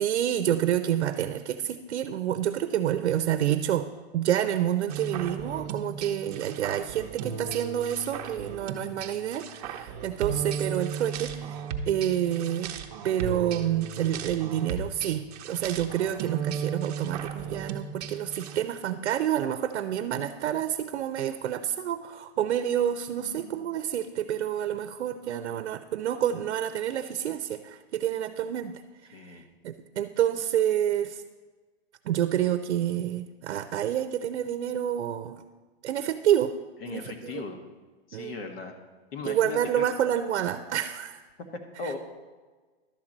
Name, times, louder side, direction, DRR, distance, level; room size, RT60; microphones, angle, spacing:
voice 1, 0.0-12.7 13.0-31.2 32.0-35.4 35.8-36.5 36.9-37.4 38.1-38.4 39.2-41.2 41.8-41.9, right 10 dB, 80° right, 10 dB, 0.6 m, -28 dB
sound 1, 4.9-18.6, right 7 dB, 35° right, 0.7 m, -36 dB
voice 2, 23.2-23.7 29.1-29.5 36.8-37.6 38.1-38.7 39.1-39.9 41.8-42.0, left 4 dB, 60° left, 4 dB, 1.3 m, -38 dB
11.5 x 3.9 x 7.4 m, 1.4 s
hypercardioid pair, 160°, 33 cm